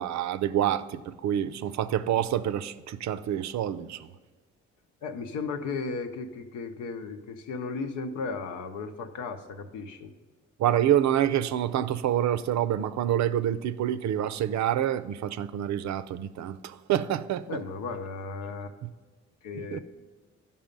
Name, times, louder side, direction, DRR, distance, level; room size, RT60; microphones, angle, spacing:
voice 1, 0.0-4.1 10.6-17.6 18.8-18.9 19.5-19.8, right 11 dB, 65° right, 0.5 m, -27 dB
voice 2, 5.0-10.1 17.5-18.7 19.4-19.8, left 4 dB, 80° left, 0.9 m, -35 dB
10.0 x 5.5 x 5.3 m
cardioid pair, 90°, 30 cm